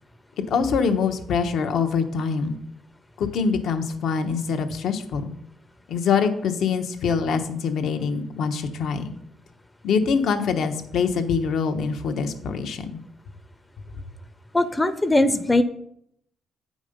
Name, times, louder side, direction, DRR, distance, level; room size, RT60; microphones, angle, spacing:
voice 1, 0.5-2.6 3.2-5.3 5.9-9.1 9.8-12.9, left 5 dB, 70° left, 6 dB, 1.0 m, -24 dB
voice 2, 14.5-15.6, left 1 dB, 15° left, 11 dB, 0.6 m, -20 dB
8.6 x 5.2 x 5.2 m, 0.73 s
cardioid pair, 90°, 0 cm